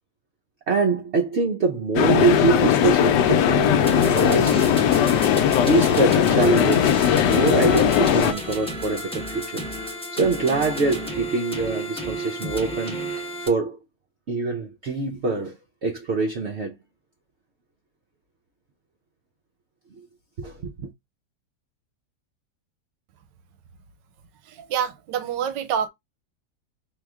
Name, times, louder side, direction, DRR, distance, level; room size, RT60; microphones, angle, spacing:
voice 1, 0.7-4.7 5.6-9.6 10.1-13.8 14.3-16.7 20.4-20.9, right 3 dB, 65° right, 0.6 m, -24 dB
sound 1, 2.0-8.3, left 9 dB, 75° left, 1.2 m, -19 dB
sound 2, 3.9-13.5, equal, 5° left, 0.5 m, -32 dB
voice 2, 24.5-25.9, right 8 dB, 90° right, 1.3 m, -27 dB
3.9 x 2.8 x 3.5 m
omnidirectional pair, 1.9 m